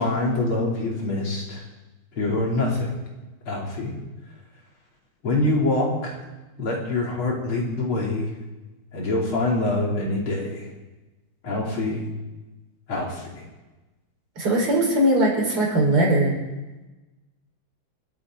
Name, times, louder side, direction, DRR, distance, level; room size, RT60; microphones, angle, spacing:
voice 1, 0.0-1.6 2.2-2.9 3.5-3.9 5.2-6.2 6.6-8.3 8.9-10.7 11.4-12.0 12.9-13.4, left 2 dB, 75° left, -2 dB, 3.8 m, -25 dB
voice 2, 14.4-16.4, right 1 dB, 85° right, -2 dB, 5.3 m, -20 dB
29.0 x 10.0 x 3.8 m, 1.1 s
omnidirectional pair, 2.3 m